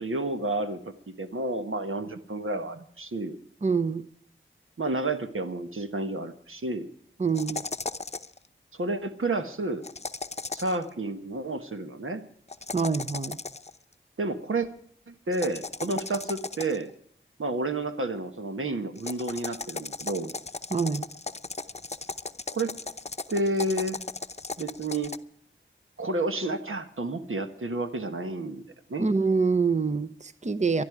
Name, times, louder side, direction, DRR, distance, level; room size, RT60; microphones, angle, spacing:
voice 1, 0.0-3.4 4.8-6.9 8.7-9.8 10.5-12.2 14.2-14.7 15.1-16.9 17.4-20.3 22.5-22.7 23.3-24.0 24.6-25.1 26.0-28.6 28.9-29.1, right 2 dB, 80° right, 7 dB, 1.3 m, -30 dB
voice 2, 3.6-4.1 7.2-7.6 12.7-13.4 20.7-21.1 29.0-30.8, right 4 dB, 35° right, 13 dB, 0.7 m, -25 dB
sound 1, 7.3-8.4 9.8-10.8 12.5-13.8 15.3-16.9 19.0-25.2, left 3 dB, 30° left, 0.7 m, -36 dB
20.0 x 12.0 x 4.9 m, 0.63 s
wide cardioid pair, 50°, 21 cm